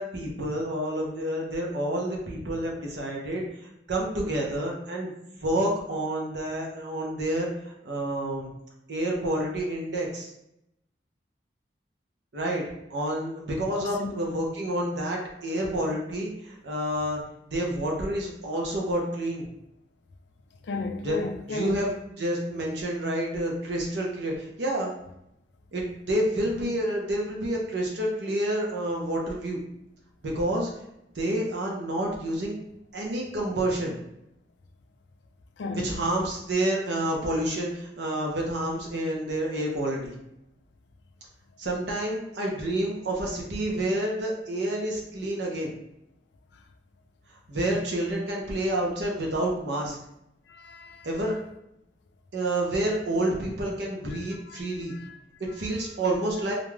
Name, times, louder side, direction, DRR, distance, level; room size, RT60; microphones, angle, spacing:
voice 1, 0.0-5.1 5.4-7.5 7.8-8.5 8.9-10.3 12.3-12.6 12.9-17.2 17.5-19.5 21.0-21.2 21.5-24.9 25.7-29.6 30.2-30.7 31.2-32.5 32.9-33.9 35.7-40.1 41.6-45.7 47.5-50.0 51.0-51.3 52.3-55.0 55.5-56.5, right 1 dB, 70° right, 0.7 m, -29 dB
voice 2, 13.8-14.1 15.5-15.6 20.6-21.9 35.6-35.9 50.5-51.1 54.1-54.6 54.9-55.2, left 3 dB, 75° left, 0.4 m, -35 dB
2.5 x 2.3 x 3.2 m
head